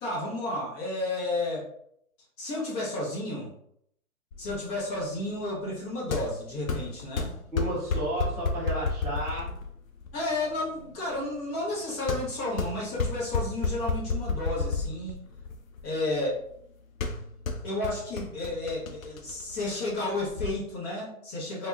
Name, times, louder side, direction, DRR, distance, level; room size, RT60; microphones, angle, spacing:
voice 1, 0.0-1.7 2.4-3.5 4.4-7.3 10.1-15.2 15.8-16.4 17.6-21.7, left 2 dB, 25° left, -4 dB, 0.9 m, -32 dB
sound 1, 4.3-20.5, left 4 dB, 65° left, 0.6 m, -33 dB
voice 2, 7.5-9.5, right 1 dB, 5° right, -13 dB, 0.5 m, -32 dB
3.5 x 2.3 x 2.5 m, 0.70 s
figure-of-eight pair, 125°, 43 cm